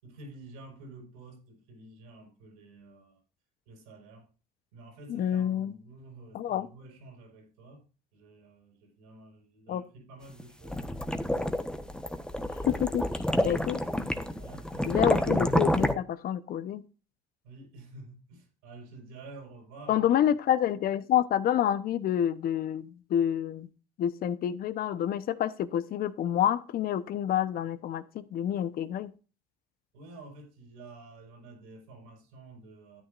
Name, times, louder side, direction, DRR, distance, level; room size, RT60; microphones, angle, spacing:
voice 1, 0.0-3.2 3.7-4.3 4.7-7.8 8.1-10.9 14.4-15.0 17.4-20.1 29.9-33.0, right 2 dB, 85° right, 5.6 m, -50 dB
voice 2, 5.1-5.7 6.3-6.7 9.7-9.8 12.6-13.1 13.4-13.8 14.8-16.8 19.9-23.7 24.0-29.1, left 10 dB, 55° left, 1.0 m, -28 dB
sound 1, 10.4-15.9, left 1 dB, 5° left, 1.2 m, -28 dB
13.0 x 8.9 x 2.6 m
hypercardioid pair, 75°, 18 cm